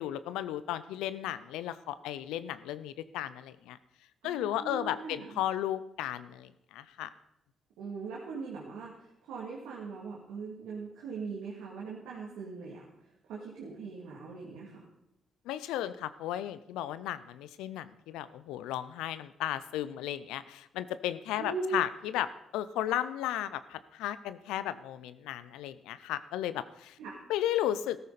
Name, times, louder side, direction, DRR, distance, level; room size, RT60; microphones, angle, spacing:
voice 1, 0.0-3.8 4.2-7.1 15.5-27.0 27.3-28.0, left 12 dB, 80° left, 14 dB, 0.5 m, -34 dB
voice 2, 4.2-5.4 7.8-12.8 13.3-14.8 21.4-21.8 27.0-27.1, right 4 dB, 80° right, -5 dB, 2.5 m, -40 dB
15.0 x 13.5 x 4.2 m, 0.83 s
hypercardioid pair, 50°, 0 cm